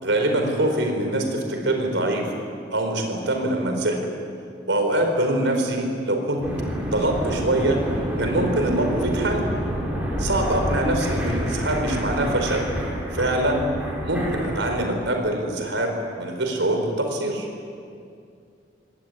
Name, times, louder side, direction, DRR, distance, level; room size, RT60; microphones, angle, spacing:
voice 1, 0.0-2.3 2.7-4.0 4.7-6.4 6.9-7.8 8.2-9.5 10.2-12.6 13.1-13.6 14.0-17.5, right 1 dB, 80° right, 4 dB, 4.8 m, -24 dB
sound 1, 6.4-14.7, equal, 10° right, 5.8 m, -28 dB
23.0 x 18.5 x 9.9 m, 2.4 s
head